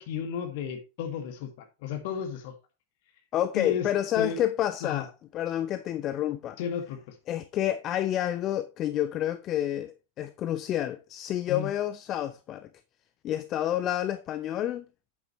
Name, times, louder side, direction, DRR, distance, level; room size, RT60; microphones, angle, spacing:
voice 1, 0.0-2.5 3.5-3.9 4.2-4.4 4.8-5.0 6.6-7.2 11.5-11.7, left 8 dB, 50° left, 2.0 m, -33 dB
voice 2, 3.3-6.6 7.3-12.7 13.2-14.8, left 11 dB, 35° left, 0.5 m, -29 dB
8.6 x 8.2 x 3.1 m
figure-of-eight pair, 90°, 0 cm